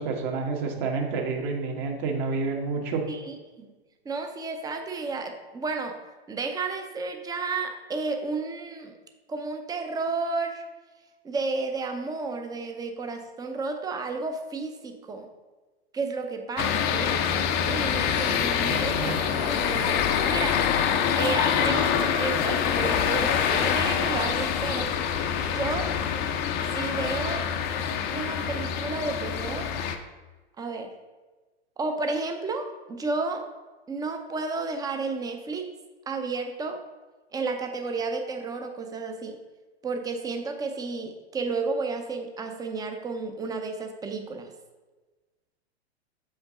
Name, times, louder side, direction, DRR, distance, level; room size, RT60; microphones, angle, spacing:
voice 1, 0.0-3.1 18.6-19.2, right 4 dB, 45° right, 2 dB, 1.4 m, -29 dB
voice 2, 3.1-3.7 4.0-6.0 6.3-9.0 9.3-10.6 11.2-15.3 15.9-17.3 17.6-20.6 21.1-24.9 25.5-25.9 26.7-27.4 28.1-29.7 30.6-30.9 31.8-33.4 33.9-35.7 36.1-36.8 37.3-39.4 39.8-44.5, right 3 dB, 10° right, 5 dB, 0.6 m, -32 dB
sound 1, 16.6-30.0, left 8 dB, 30° left, 0.5 m, -25 dB
7.2 x 5.2 x 3.7 m, 1.3 s
hypercardioid pair, 120°, 33 cm